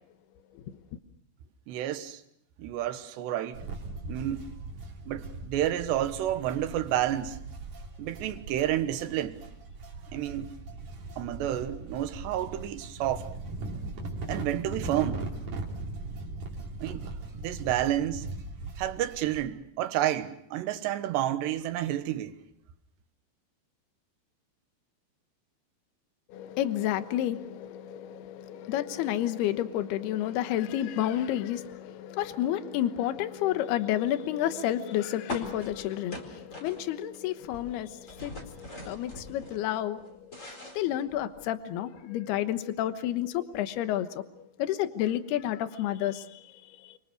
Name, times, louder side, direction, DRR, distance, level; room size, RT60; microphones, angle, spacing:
voice 1, 1.7-2.2 2.6-3.6 4.1-4.5 5.1-7.4 8.0-9.4 10.1-10.5 11.2-13.3 14.3-15.3 16.8-18.3 18.8-22.4, right 12 dB, 75° right, 3.3 m, -30 dB
sound 1, 3.5-19.4, right 2 dB, 45° right, 4.3 m, -39 dB
voice 2, 26.3-46.5 46.8-47.0, left 12 dB, 70° left, 2.9 m, -30 dB
sound 2, 35.3-37.2 37.4-39.6 40.0-41.5, left 2 dB, 15° left, 4.1 m, -42 dB
30.0 x 24.0 x 6.5 m
omnidirectional pair, 5.2 m